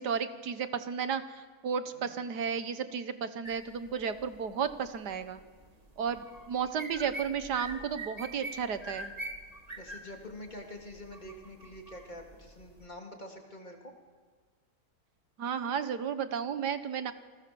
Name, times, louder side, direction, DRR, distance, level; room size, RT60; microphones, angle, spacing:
voice 1, 0.0-5.4 6.0-9.1 15.4-17.1, right 7 dB, 85° right, 11 dB, 1.8 m, -33 dB
voice 2, 1.9-2.2 9.8-13.9, left 1 dB, 25° left, 2 dB, 3.0 m, -46 dB
Cockatiel Whistling and Making Other Noises, 3.4-12.8, right 1 dB, 25° right, 2.0 m, -45 dB
28.5 x 19.5 x 7.1 m, 1.5 s
omnidirectional pair, 1.7 m